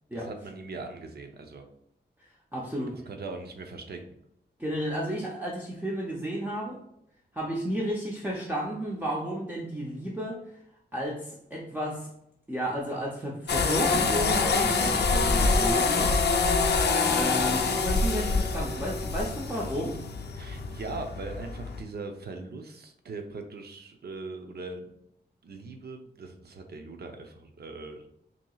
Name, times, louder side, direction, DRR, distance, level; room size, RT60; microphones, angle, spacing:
voice 1, 0.1-1.7 2.9-4.2 20.3-24.9 25.4-28.1, right 3 dB, 60° right, 4 dB, 0.7 m, -40 dB
voice 2, 2.5-3.0 4.6-6.8 7.3-10.4 10.9-12.1 12.5-16.1 17.1-20.0, equal, 10° right, -4 dB, 0.6 m, -32 dB
sound 1, 13.5-21.8, left 4 dB, 70° left, 0.5 m, -26 dB
5.8 x 2.8 x 2.3 m, 0.75 s
wide cardioid pair, 175°, 18 cm